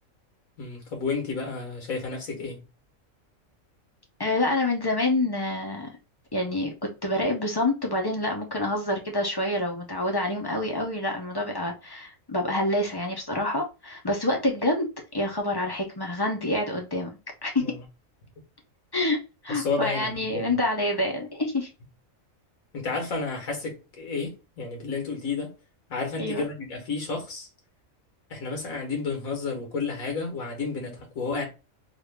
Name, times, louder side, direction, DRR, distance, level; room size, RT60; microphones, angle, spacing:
voice 1, 0.6-2.6 17.6-17.8 19.5-20.5 22.7-25.5 25.9-27.5 28.3-31.5, left 4 dB, 80° left, 1.7 m, -31 dB
voice 2, 4.2-5.9 6.3-6.7 7.0-14.9 15.1-17.6 18.9-19.2 19.4-21.7 26.2-26.4, left 1 dB, 30° left, 0.4 m, -27 dB
3.4 x 2.4 x 3.3 m
omnidirectional pair, 1.4 m